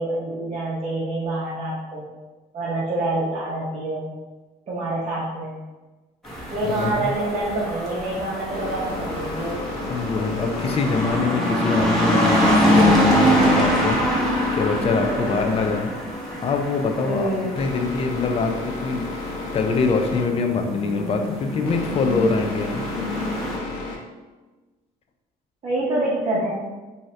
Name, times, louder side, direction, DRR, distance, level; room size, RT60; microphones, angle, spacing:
voice 1, 0.0-2.1 2.5-4.1 4.7-5.6 6.5-9.7 15.1-15.6 17.0-17.5 25.6-26.5, right 2 dB, 35° right, -7 dB, 0.7 m, -26 dB
sound 1, 6.3-23.6, equal, ahead, 0.8 m, -24 dB
voice 2, 6.8-7.1 9.9-14.0 14.5-15.9 16.4-17.3 17.5-19.0 19.5-22.8, left 4 dB, 35° left, 5 dB, 0.4 m, -24 dB
sound 2, 8.5-24.0, left 2 dB, 90° left, 0.7 m, -34 dB
2.7 x 2.3 x 3.1 m, 1.2 s
cardioid pair, 110°, 17 cm